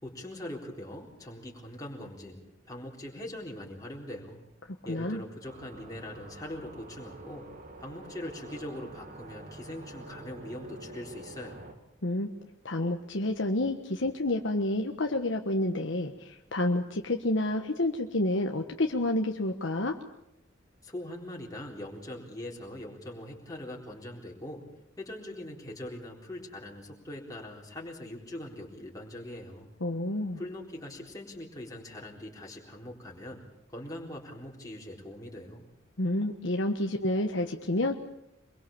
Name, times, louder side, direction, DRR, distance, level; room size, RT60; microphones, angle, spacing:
voice 1, 0.0-4.4 4.8-7.5 7.8-11.7 20.8-24.7 25.0-29.7 30.4-33.4 33.7-35.6, left 1 dB, 20° left, -3 dB, 4.0 m, -42 dB
voice 2, 4.9-5.2 12.0-12.3 12.6-19.9 29.8-30.4 36.0-37.9, left 1 dB, 70° left, 3 dB, 1.4 m, -29 dB
sound 1, 5.4-11.7, right 2 dB, 45° right, 3.0 m, -47 dB
25.0 x 22.5 x 7.2 m, 0.84 s
head